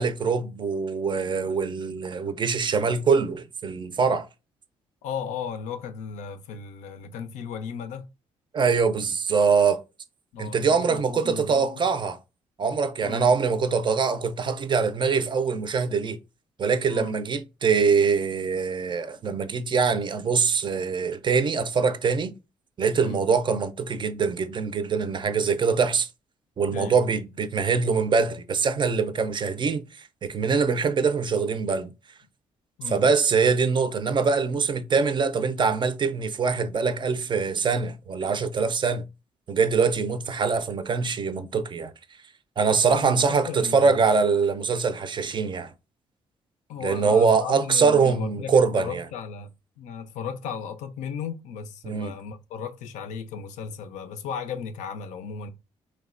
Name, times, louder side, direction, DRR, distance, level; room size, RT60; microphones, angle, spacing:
voice 1, 0.0-4.3 8.5-9.8 10.4-12.2 12.6-16.2 16.6-22.3 22.8-26.1 26.6-29.8 30.2-31.9 32.9-39.0 39.5-41.9 42.6-45.7 46.8-49.0 51.8-52.1, right 5 dB, 40° right, 0.4 m, -23 dB
voice 2, 5.0-8.1 10.3-11.8 13.0-13.3 16.9-17.2 23.0-23.2 26.7-27.1 32.8-33.0 42.8-44.1 46.7-49.5 49.8-55.5, left 6 dB, 85° left, 0.4 m, -35 dB
3.1 x 2.1 x 2.4 m
supercardioid pair, 65°, 12 cm